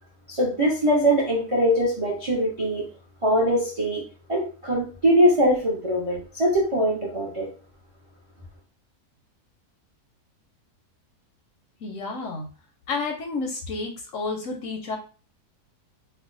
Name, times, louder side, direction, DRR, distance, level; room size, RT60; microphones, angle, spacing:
voice 1, 0.3-2.8 3.2-4.0 4.3-7.5, equal, 50° right, -3 dB, 0.3 m, -22 dB
voice 2, 11.8-12.5 12.9-15.0, left 3 dB, 70° left, 3 dB, 0.8 m, -30 dB
2.6 x 2.1 x 3.7 m, 0.37 s
omnidirectional pair, 1.7 m